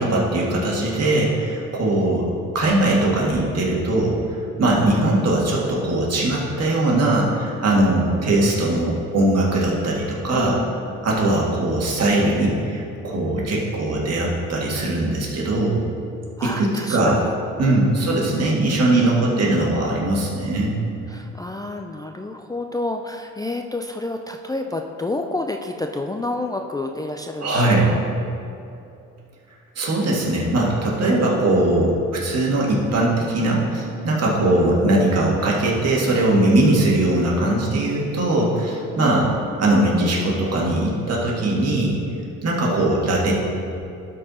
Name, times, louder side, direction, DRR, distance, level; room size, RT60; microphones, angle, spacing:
voice 1, 0.0-2.3 2.5-4.2 4.6-10.6 11.0-15.8 16.4-17.2 17.6-20.7 27.4-27.9 29.8-39.2 39.6-42.0 42.4-43.3, right 2 dB, 55° right, -3 dB, 2.0 m, -20 dB
voice 2, 10.3-11.0 16.4-17.3 17.6-19.4 21.1-28.1 39.0-39.5, left 2 dB, 15° left, 4 dB, 0.4 m, -30 dB
12.0 x 4.5 x 4.3 m, 2.6 s
cardioid pair, 90°, 30 cm